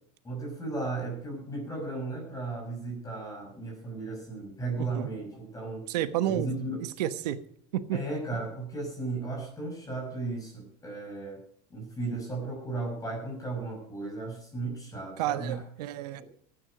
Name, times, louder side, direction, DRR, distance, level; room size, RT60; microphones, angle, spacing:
voice 1, 0.2-5.8 6.2-6.9 7.9-11.4 11.7-15.6, right 3 dB, 15° left, 0 dB, 6.0 m, -35 dB
voice 2, 4.8-5.1 5.9-6.5 7.0-7.4 7.7-8.0 15.2-16.2, right 12 dB, 85° right, 11 dB, 1.2 m, -30 dB
14.5 x 10.0 x 5.1 m, 0.64 s
supercardioid pair, 130°, 20 cm